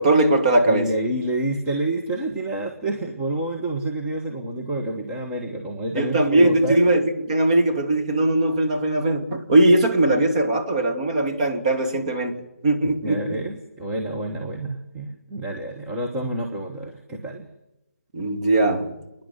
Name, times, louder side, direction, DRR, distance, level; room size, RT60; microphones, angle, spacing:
voice 1, 0.0-0.9 6.0-12.4 12.6-13.4 18.1-18.9, right 1 dB, 30° right, 5 dB, 2.5 m, -20 dB
voice 2, 0.7-6.8 13.0-17.5, right 1 dB, 10° right, -2 dB, 1.3 m, -28 dB
29.0 x 10.5 x 9.7 m, 0.92 s
figure-of-eight pair, 150°, 8 cm